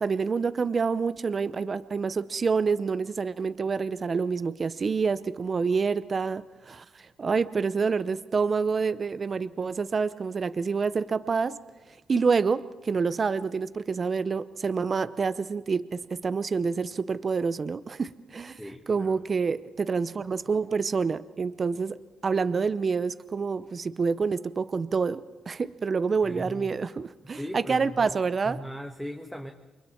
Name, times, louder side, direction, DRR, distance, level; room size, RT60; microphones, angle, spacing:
voice 1, 0.0-11.6 11.9-18.6 18.9-22.0 22.2-28.6, right 5 dB, 40° right, 0.7 m, -27 dB
voice 2, 18.6-19.2 26.2-26.7 27.2-28.2 28.5-29.5, equal, ahead, 1.6 m, -39 dB
29.0 x 23.5 x 4.5 m
cardioid pair, 80°, 0 cm